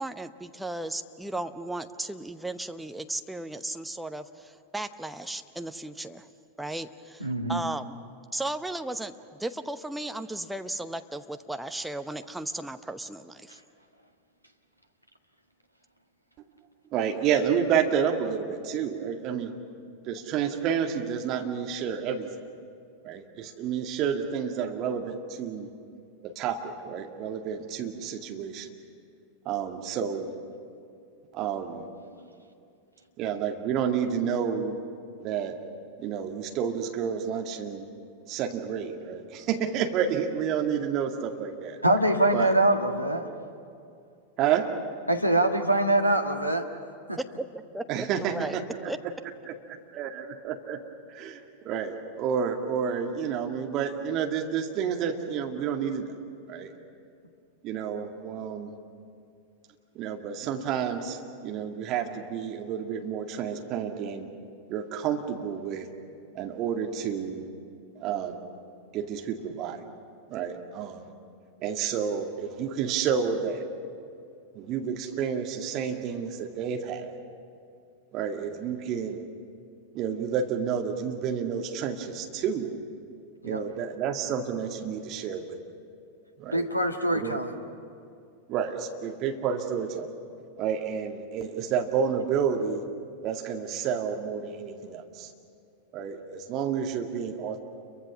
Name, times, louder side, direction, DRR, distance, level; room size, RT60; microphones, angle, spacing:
voice 1, 0.0-6.3 6.6-8.0 8.3-13.6 47.2-47.5 47.7-48.6 48.9-49.0, right 1 dB, 5° right, 8 dB, 0.8 m, -35 dB
voice 2, 7.2-7.6 41.8-43.3 45.1-46.7 47.1-47.2 83.4-83.6 86.5-87.5, right 1 dB, 90° right, 3 dB, 1.6 m, -24 dB
voice 3, 16.9-19.5 20.1-22.3 23.0-25.7 26.2-28.7 29.5-30.3 31.3-31.8 33.2-34.8 35.2-35.6 36.0-37.9 38.3-41.8 42.3-42.5 44.4-44.7 47.9-48.9 49.5-49.6 49.9-50.8 51.1-56.1 56.5-56.7 57.6-58.7 60.0-64.3 64.7-65.9 66.3-67.5 68.0-68.4 68.9-69.8 70.3-71.1 71.6-73.7 74.5-77.1 78.1-79.2 79.9-82.7 83.4-85.5 86.4-86.7 87.1-87.4 88.5-90.1 90.6-92.8 93.2-95.3 95.9-97.6, right 7 dB, 35° right, 3 dB, 2.0 m, -30 dB
29.0 x 23.5 x 6.2 m, 2.5 s
figure-of-eight pair, 90°, 0 cm